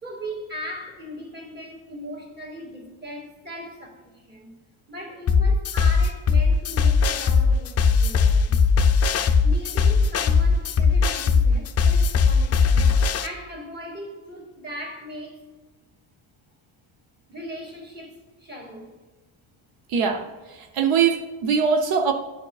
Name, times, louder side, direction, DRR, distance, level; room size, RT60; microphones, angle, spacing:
voice 1, 0.0-4.5 4.9-8.6 9.4-15.4 17.3-19.0, equal, 20° right, -2 dB, 2.0 m, -38 dB
sound 1, 5.3-13.3, left 5 dB, 35° left, 0.4 m, -19 dB
voice 2, 19.9-22.1, right 6 dB, 85° right, 5 dB, 0.7 m, -22 dB
10.5 x 4.6 x 2.3 m, 1.2 s
cardioid pair, 110°, 49 cm